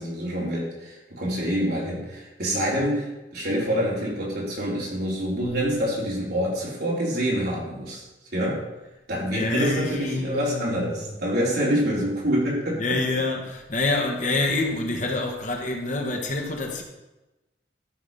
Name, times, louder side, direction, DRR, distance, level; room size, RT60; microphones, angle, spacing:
voice 1, 0.0-8.0 8.3-8.6 9.1-12.8, equal, 60° right, 3.9 m, -26 dB
voice 2, 9.3-11.3 12.8-16.8, left 2 dB, 45° left, 1.4 m, -27 dB
13.0 x 5.4 x 5.5 m
head